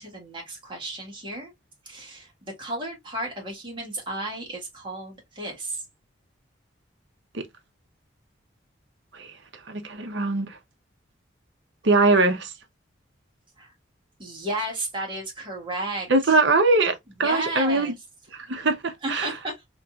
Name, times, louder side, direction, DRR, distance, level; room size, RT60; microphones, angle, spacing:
voice 1, 0.0-1.5 1.9-5.8 13.6-13.7 14.2-16.4 17.2-17.9 18.5-18.7 19.0-19.7, right 1 dB, 25° right, 1.8 m, -33 dB
voice 2, 9.7-10.6 11.8-12.5 16.1-16.9 17.2-17.9 18.3-19.3, right 2 dB, 70° right, 0.8 m, -22 dB
4.1 x 3.0 x 2.3 m
head